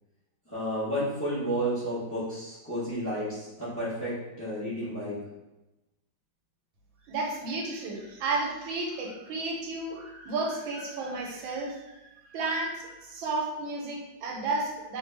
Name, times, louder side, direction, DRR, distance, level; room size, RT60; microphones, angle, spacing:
voice 1, 0.5-4.1 4.4-5.2, equal, 20° left, -10 dB, 0.4 m, -31 dB
voice 2, 7.1-15.0, right 3 dB, 85° right, 0 dB, 1.5 m, -32 dB
3.3 x 2.3 x 3.2 m, 1.0 s
omnidirectional pair, 2.1 m